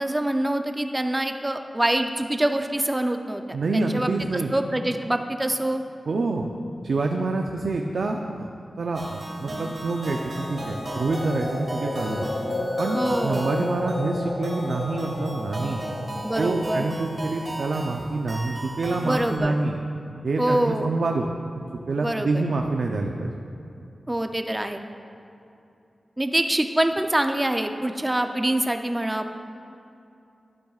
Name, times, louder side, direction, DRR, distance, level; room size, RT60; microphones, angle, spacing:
voice 1, 0.0-3.4 3.7-4.1 4.5-5.8 12.9-13.4 16.2-16.9 19.0-19.6 20.4-20.9 22.0-22.3 24.1-24.8 26.2-29.4, right 1 dB, 15° right, 6 dB, 0.5 m, -25 dB
voice 2, 3.5-4.5 6.1-6.5 6.8-8.5 8.8-12.3 12.8-15.8 16.4-19.8 20.2-21.2 21.9-23.3, right 3 dB, 70° right, 2 dB, 0.5 m, -26 dB
sound 1, 8.9-19.4, right 1 dB, 45° right, 1.7 m, -36 dB
sound 2, 10.0-18.0, left 2 dB, 50° left, 0.7 m, -33 dB
12.0 x 12.0 x 2.4 m, 2.7 s
wide cardioid pair, 125°, 0 cm